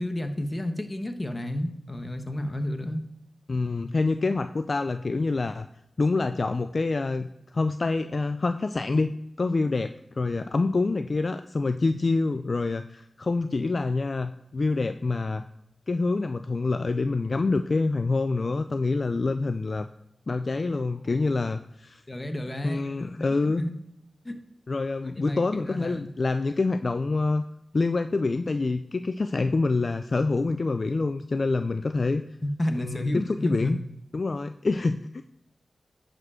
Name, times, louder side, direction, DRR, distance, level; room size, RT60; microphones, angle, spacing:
voice 1, 0.0-3.0 22.1-22.8 23.1-23.7 24.2-24.4 25.0-26.0 32.4-33.8, left 1 dB, 30° left, 6 dB, 1.2 m, -31 dB
voice 2, 3.5-5.7 6.0-7.3 7.5-15.4 15.9-19.9 20.3-22.0 22.6-23.6 24.7-27.4 27.7-32.2 32.8-33.8 34.1-35.2, left 3 dB, 55° left, 9 dB, 0.4 m, -26 dB
10.5 x 5.1 x 4.9 m, 0.81 s
cardioid pair, 60°, 0 cm